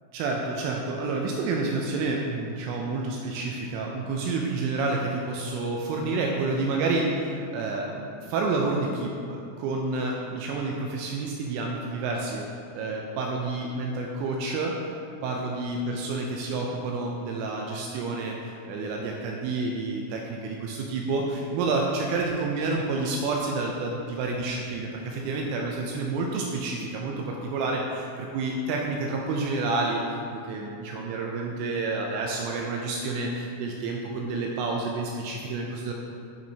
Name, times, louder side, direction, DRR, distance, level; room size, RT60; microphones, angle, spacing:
voice 1, 0.1-35.9, right 3 dB, 85° right, 0 dB, 2.9 m, -29 dB
8.9 x 5.1 x 2.7 m, 2.5 s
omnidirectional pair, 5.9 m